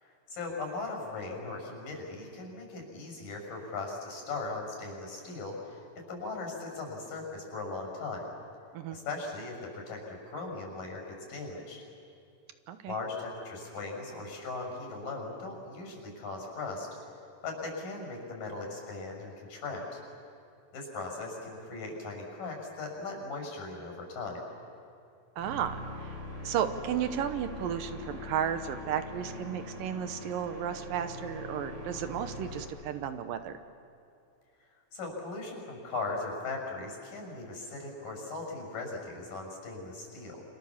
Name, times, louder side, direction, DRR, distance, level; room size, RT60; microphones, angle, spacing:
voice 1, 0.0-8.3 8.9-11.8 12.9-16.9 17.4-20.0 20.7-24.4 34.9-40.4, left 3 dB, 65° left, 1 dB, 7.6 m, -38 dB
sound 1, 25.4-32.6, left 1 dB, 55° right, 7.2 m, -42 dB
voice 2, 25.4-25.8 26.4-33.5, right 9 dB, 75° right, 9 dB, 2.6 m, -33 dB
29.0 x 26.5 x 7.3 m, 2.5 s
omnidirectional pair, 4.2 m